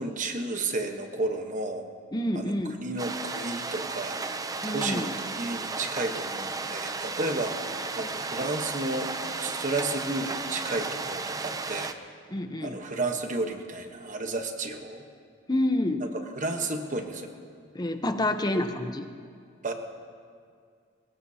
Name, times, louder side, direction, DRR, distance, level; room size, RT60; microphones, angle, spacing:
voice 1, 0.0-1.9 2.3-2.5 2.8-4.2 4.7-9.1 9.4-11.9 12.6-15.0 16.4-17.3 18.5-18.6 19.6-19.7, right 2 dB, 40° right, 5 dB, 1.1 m, -32 dB
voice 2, 2.1-2.8 4.6-5.1 12.3-12.8 15.5-16.1 17.7-19.1, left 1 dB, 20° left, 7 dB, 0.8 m, -28 dB
sound 1, 3.0-11.9, right 3 dB, 20° right, 0.5 m, -34 dB
22.0 x 19.0 x 2.8 m, 2.2 s
head